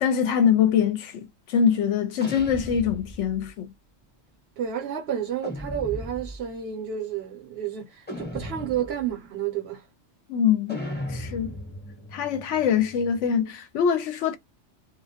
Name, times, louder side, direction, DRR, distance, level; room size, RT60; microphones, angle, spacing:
voice 1, 0.0-3.7 10.3-10.8 11.1-11.5 12.1-14.4, left 8 dB, 70° left, 0.9 m, -23 dB
sound 1, 2.2-3.5 5.4-6.5 8.1-9.1 10.7-13.4, left 1 dB, 10° left, 0.6 m, -37 dB
voice 2, 4.6-9.8, right 9 dB, 60° right, 0.8 m, -30 dB
2.3 x 2.0 x 2.7 m
omnidirectional pair, 1.3 m